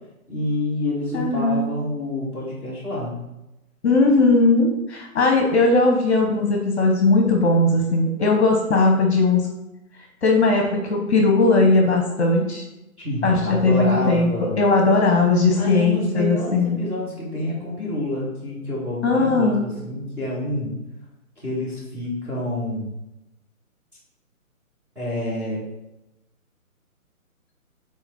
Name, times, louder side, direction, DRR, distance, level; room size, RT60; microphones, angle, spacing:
voice 1, 0.3-3.2 13.0-14.6 15.6-20.7 21.4-22.9 25.0-25.6, left 1 dB, 5° right, -11 dB, 1.8 m, -28 dB
voice 2, 1.1-1.6 3.8-9.5 10.2-12.6 13.2-16.8 19.0-19.6, left 3 dB, 50° left, 2 dB, 1.2 m, -18 dB
5.7 x 4.1 x 4.3 m, 0.92 s
hypercardioid pair, 150°, 43 cm